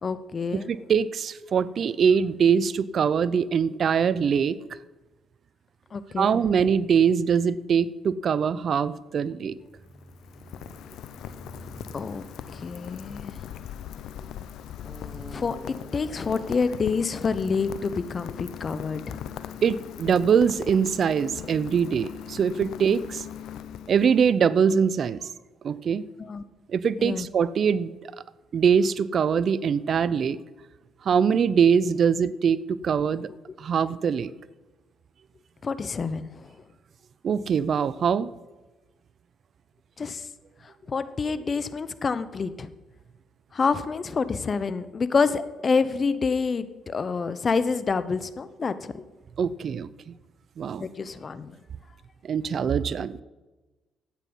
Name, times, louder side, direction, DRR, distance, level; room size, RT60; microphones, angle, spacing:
voice 1, 0.0-0.7 5.9-6.4 11.9-12.2 12.5-13.5 15.3-15.6 15.9-19.2 26.2-26.4 27.0-27.3 35.6-36.5 40.0-40.3 40.9-42.7 43.5-49.0 50.8-51.6, left 5 dB, 40° left, 14 dB, 0.9 m, -27 dB
voice 2, 0.7-4.6 6.2-9.6 19.6-23.2 23.9-25.3 25.6-26.0 26.7-27.9 28.5-30.4 31.0-33.3 33.6-34.3 37.2-38.3 49.4-49.9 50.6-50.9 52.2-53.2, right 7 dB, 55° right, 18 dB, 0.5 m, -23 dB
sound 1, 9.3-14.2 14.8-17.0, right 1 dB, 15° right, 1.2 m, -48 dB
Rain, 9.6-24.4, left 10 dB, 75° left, 0.6 m, -40 dB
12.5 x 9.1 x 5.4 m, 1.2 s
supercardioid pair, 60°, 0 cm